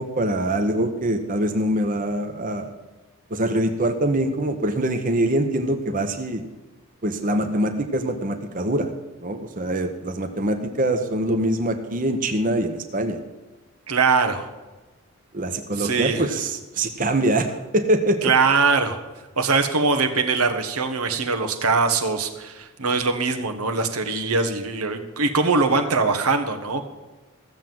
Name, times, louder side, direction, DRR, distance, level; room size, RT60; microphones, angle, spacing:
voice 1, 0.0-2.7 3.3-6.5 7.0-8.9 9.2-13.2 15.3-18.3, right 1 dB, 40° right, 6 dB, 1.0 m, -24 dB
voice 2, 13.9-14.5 15.8-16.3 18.2-19.0 19.4-26.9, right 4 dB, 85° right, 5 dB, 1.4 m, -22 dB
15.0 x 7.4 x 7.8 m, 1.2 s
head